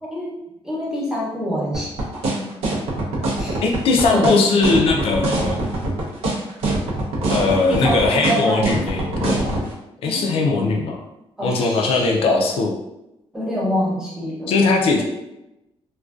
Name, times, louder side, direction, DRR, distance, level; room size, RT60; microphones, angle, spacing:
voice 1, 0.0-2.5 3.4-3.6 4.1-4.3 7.4-8.7 10.0-10.8 11.4-12.2 13.3-14.6 15.0-15.1, equal, 5° right, -6 dB, 0.6 m, -27 dB
sound 1, 1.7-9.6, right 2 dB, 85° right, 0.6 m, -23 dB
voice 2, 3.6-5.6 7.3-9.7 10.0-11.0 11.4-12.7 14.5-15.0, left 3 dB, 70° left, 1 dB, 0.4 m, -19 dB
2.5 x 2.2 x 2.3 m, 0.90 s
wide cardioid pair, 180°, 10 cm